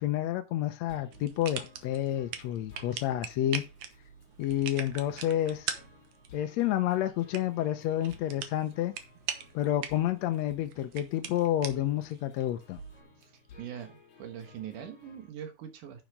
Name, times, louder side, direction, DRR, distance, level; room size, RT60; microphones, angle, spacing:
voice 1, 0.0-3.6 4.4-5.7 6.3-8.9 9.5-12.8, left 12 dB, 75° left, 1.8 m, -29 dB
sound 1, 0.9-15.3, left 4 dB, 55° left, 4.1 m, -56 dB
sound 2, 1.1-13.0, right 8 dB, 70° right, 2.4 m, -42 dB
voice 2, 13.2-16.0, right 9 dB, 90° right, 2.9 m, -43 dB
10.5 x 6.4 x 3.7 m
omnidirectional pair, 3.5 m